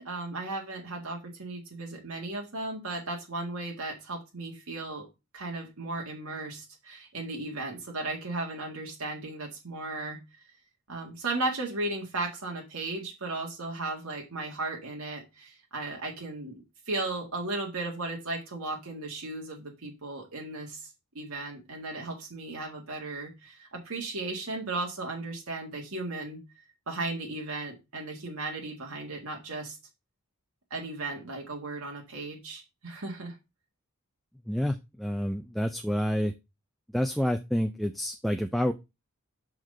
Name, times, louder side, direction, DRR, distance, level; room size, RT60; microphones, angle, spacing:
voice 1, 0.0-5.1 5.3-10.2 10.9-20.9 21.2-29.8 30.7-33.4, right 2 dB, 75° right, 0 dB, 1.8 m, -36 dB
voice 2, 34.5-36.3 36.9-38.7, equal, ahead, 7 dB, 0.3 m, -28 dB
5.9 x 5.1 x 5.3 m, 0.25 s
head